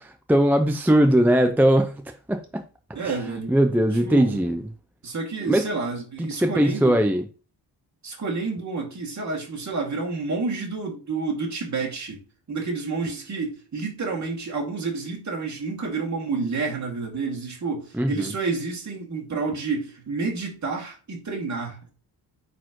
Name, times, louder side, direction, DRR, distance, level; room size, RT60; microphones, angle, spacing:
voice 1, 0.0-2.0 2.3-2.6 3.0-4.6 5.5-5.7 6.2-7.2 17.9-18.3, equal, 5° right, 0.4 m, -20 dB
voice 2, 2.9-3.5 4.0-4.4 5.0-7.0 8.0-12.2 12.5-21.9, right 4 dB, 40° right, 2.2 m, -29 dB
9.1 x 4.3 x 3.0 m
wide cardioid pair, 160°, 44 cm